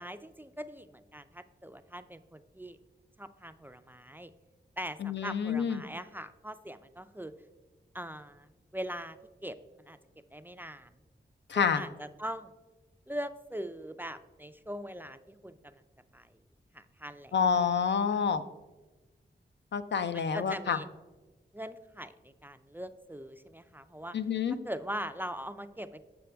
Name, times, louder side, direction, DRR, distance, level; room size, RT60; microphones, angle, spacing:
voice 1, 0.0-2.8 3.2-4.3 4.8-7.3 7.9-9.2 9.4-10.0 10.3-10.9 11.5-12.5 13.1-15.8 16.1-16.4 16.7-17.6 20.1-20.9 21.5-24.2 24.6-26.0, equal, 10° right, 11 dB, 0.3 m, -41 dB
voice 2, 5.0-5.8 11.5-11.8 17.3-18.4 19.7-20.8 24.1-24.6, left 6 dB, 75° left, 10 dB, 0.5 m, -28 dB
7.8 x 6.8 x 3.3 m, 1.2 s
wide cardioid pair, 100°, 19 cm